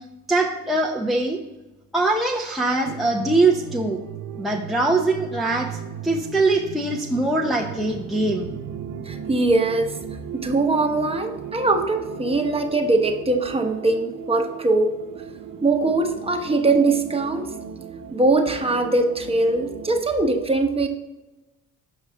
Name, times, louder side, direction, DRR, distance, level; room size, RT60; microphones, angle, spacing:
voice 1, 0.3-1.4 1.9-4.0 4.4-5.7 6.0-8.5, right 2 dB, ahead, -1 dB, 0.7 m, -22 dB
sound 1, 2.9-20.0, right 8 dB, 80° right, 0.7 m, -37 dB
voice 2, 9.0-10.0 10.3-15.0 15.6-17.5 18.1-20.9, right 2 dB, 20° right, 4 dB, 1.0 m, -21 dB
7.1 x 5.6 x 3.5 m, 1.1 s
cardioid pair, 90°, 30 cm